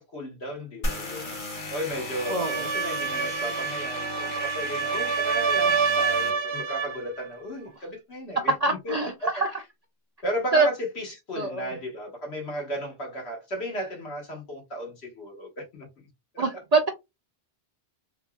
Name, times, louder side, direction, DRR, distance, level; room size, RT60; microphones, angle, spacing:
voice 1, 0.0-1.4 1.7-9.0 9.2-9.3 10.2-15.9 16.3-16.6, equal, 70° left, 1.5 m, -35 dB
sound 1, 0.8-6.3, left 2 dB, 50° left, 1.2 m, -35 dB
sound 2, 2.1-7.0, right 5 dB, 70° right, 0.9 m, -27 dB
voice 2, 2.3-2.7 8.6-9.5 10.5-10.7 11.3-11.7 16.4-16.9, right 3 dB, 55° right, 0.4 m, -24 dB
3.9 x 2.3 x 2.2 m
omnidirectional pair, 1.1 m